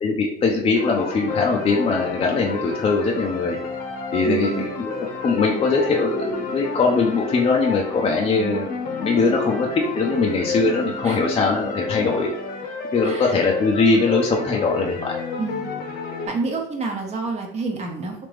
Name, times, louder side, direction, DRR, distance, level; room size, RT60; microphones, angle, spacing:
voice 1, 0.0-3.6 4.1-5.0 5.2-8.7 9.0-9.7 9.9-12.3 12.9-15.2, left 4 dB, 30° left, 0 dB, 0.6 m, -21 dB
sound 1, 0.7-16.3, left 4 dB, 50° left, 0.9 m, -30 dB
voice 2, 4.2-4.7 9.2-9.3 10.6-10.7 11.0-11.2 12.0-12.1 13.0-13.3 15.4-15.7 16.3-18.3, right 4 dB, 35° right, 1 dB, 1.0 m, -29 dB
3.4 x 2.9 x 3.2 m, 0.75 s
supercardioid pair, 105°, 19 cm